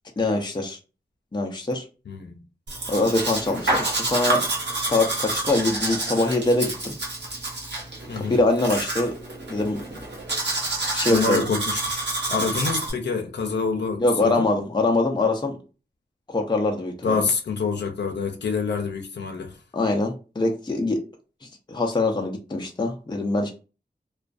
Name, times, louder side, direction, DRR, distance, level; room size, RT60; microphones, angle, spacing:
voice 1, 0.2-0.8 1.3-1.9 2.9-4.5 4.8-7.0 8.2-9.2 9.5-10.0 10.9-11.4 14.0-15.6 16.3-17.2 19.7-21.0 21.4-23.5, left 2 dB, 25° left, 0.5 m, -23 dB
voice 2, 2.1-2.4 8.1-8.3 11.1-14.5 17.0-19.5, left 4 dB, 90° left, 0.4 m, -27 dB
Domestic sounds home sounds, 2.7-12.9, right 2 dB, 85° right, 0.9 m, -28 dB
2.4 x 2.2 x 2.4 m
wide cardioid pair, 65°, 17 cm